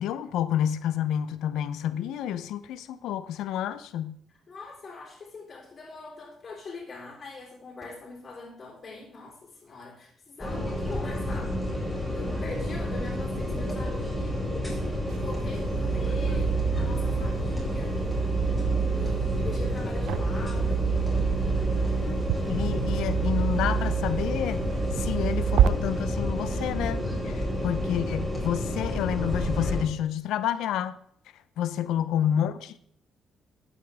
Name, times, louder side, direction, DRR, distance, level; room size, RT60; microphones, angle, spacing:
voice 1, 0.0-4.2 22.5-24.6 25.0-31.0 31.6-32.8, left 10 dB, 85° left, 0.7 m, -29 dB
voice 2, 4.5-18.0 18.9-21.0, left 3 dB, 40° left, 3.7 m, -43 dB
sound 1, 10.4-29.8, left 1 dB, 5° left, 4.6 m, -30 dB
sound 2, 15.1-25.7, right 8 dB, 80° right, 0.5 m, -28 dB
13.0 x 8.3 x 3.5 m
cardioid pair, 90°, 0 cm